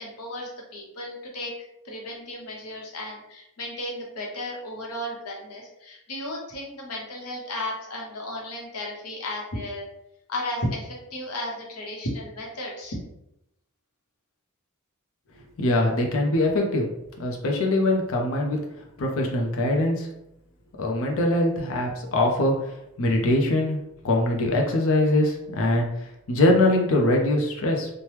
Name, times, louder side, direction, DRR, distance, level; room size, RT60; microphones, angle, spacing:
voice 1, 0.0-1.5 1.8-9.9 10.3-13.0, left 1 dB, 85° left, -1 dB, 0.9 m, -34 dB
voice 2, 15.6-16.9 17.2-18.7 19.0-20.1 20.8-23.8 24.0-27.9, left 1 dB, 65° left, 1 dB, 0.5 m, -23 dB
2.9 x 2.1 x 3.2 m, 0.83 s
head